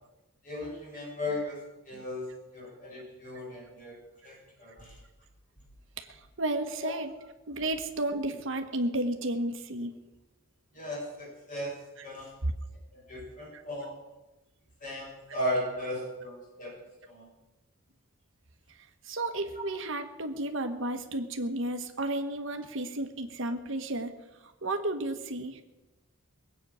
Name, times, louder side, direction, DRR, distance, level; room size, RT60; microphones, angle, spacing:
voice 1, 0.4-4.0 4.2-5.0 6.8-6.9 10.7-12.3 12.9-14.0 14.8-17.3, left 1 dB, 40° left, -3 dB, 6.4 m, -37 dB
voice 2, 6.0-7.1 7.5-10.0 12.4-12.5 13.5-13.6 19.0-24.1 24.4-25.6, right 1 dB, 65° right, 6 dB, 1.3 m, -32 dB
20.5 x 8.7 x 6.3 m, 1.0 s
head